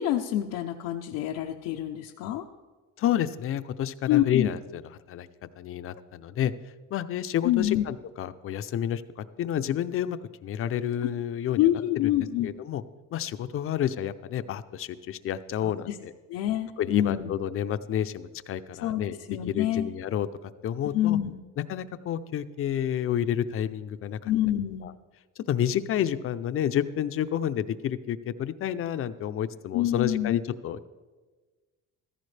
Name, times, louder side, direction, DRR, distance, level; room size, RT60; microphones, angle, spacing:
voice 1, 0.0-2.5 4.1-4.5 7.4-7.8 11.0-11.1 11.6-12.5 15.6-15.9 16.3-17.3 18.8-19.0 19.3-19.9 20.9-21.4 24.2-24.9 29.7-30.4, left 13 dB, 90° left, 1 dB, 0.7 m, -26 dB
voice 2, 3.0-4.8 5.1-5.3 5.6-6.5 6.9-9.0 9.4-11.6 12.0-12.2 12.4-12.8 13.1-16.1 16.8-19.2 19.5-20.3 20.6-21.2 21.7-24.3 24.8-24.9 25.4-30.9, left 10 dB, 40° left, 12 dB, 0.5 m, -29 dB
15.0 x 14.5 x 3.3 m, 1.3 s
cardioid pair, 145°, 33 cm